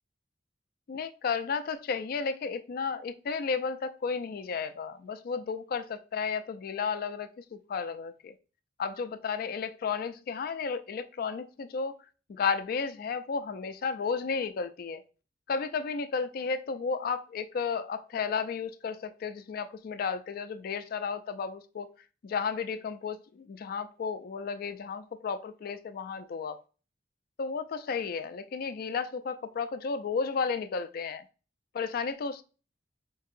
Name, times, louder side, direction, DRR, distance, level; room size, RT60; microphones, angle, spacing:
voice 1, 0.9-8.3 8.8-12.0 12.3-15.0 15.5-21.9 22.2-26.6 27.4-31.2 31.7-32.4, left 5 dB, 50° left, 0.3 m, -33 dB
4.5 x 2.7 x 2.5 m
head